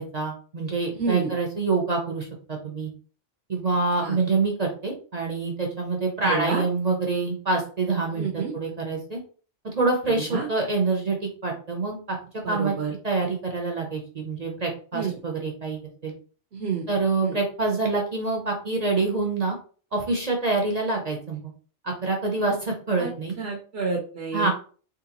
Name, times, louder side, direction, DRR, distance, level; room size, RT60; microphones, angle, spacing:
voice 1, 0.0-2.9 3.5-9.2 9.6-12.7 13.0-16.1 16.9-19.6 19.9-21.5 21.8-23.3 24.3-24.5, right 3 dB, 40° right, 1 dB, 0.7 m, -26 dB
voice 2, 1.0-1.3 4.0-4.2 6.2-6.6 8.1-8.5 10.3-10.5 12.4-12.9 14.9-15.1 16.5-16.9 17.2-17.3 23.0-23.1 23.4-24.5, right 5 dB, 65° right, 1 dB, 1.0 m, -29 dB
3.7 x 3.1 x 2.9 m, 0.40 s
omnidirectional pair, 1.2 m